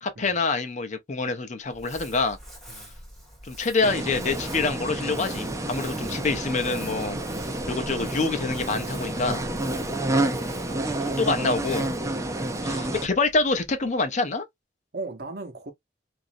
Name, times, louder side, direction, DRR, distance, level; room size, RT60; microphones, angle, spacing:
voice 1, 0.0-2.4 3.4-7.2 7.7-9.4 11.2-11.9 12.6-14.5, left 3 dB, 40° left, 0.6 m, -26 dB
Crumpling crinkling, 1.6-14.1, equal, ahead, 1.9 m, -45 dB
sound 1, 3.8-13.1, right 1 dB, 20° right, 0.5 m, -29 dB
voice 2, 10.7-11.2 12.5-12.9 14.9-15.7, right 3 dB, 60° right, 0.8 m, -38 dB
3.0 x 2.6 x 2.5 m
head